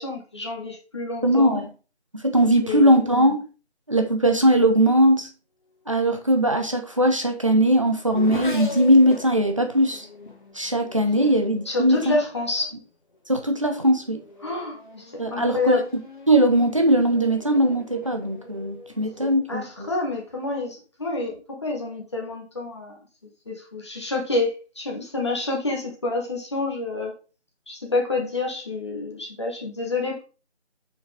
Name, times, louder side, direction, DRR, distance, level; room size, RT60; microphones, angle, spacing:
voice 1, 0.0-1.6 2.6-3.0 11.2-11.3 11.6-12.7 14.4-15.8 19.5-23.0 23.4-27.1 27.7-30.2, left 2 dB, 25° left, 1.4 m, -28 dB
voice 2, 1.2-1.7 2.1-3.4 3.9-5.3 5.9-10.1 10.5-12.2 13.3-14.2 15.2-15.8 16.3-19.9, right 1 dB, 30° right, 0.8 m, -20 dB
Race car auto racing / Accelerating revving vroom, 6.6-12.3 13.1-13.5 13.9-19.8, left 2 dB, 45° left, 1.7 m, -41 dB
6.2 x 6.2 x 3.5 m
figure-of-eight pair, 165°, 35 cm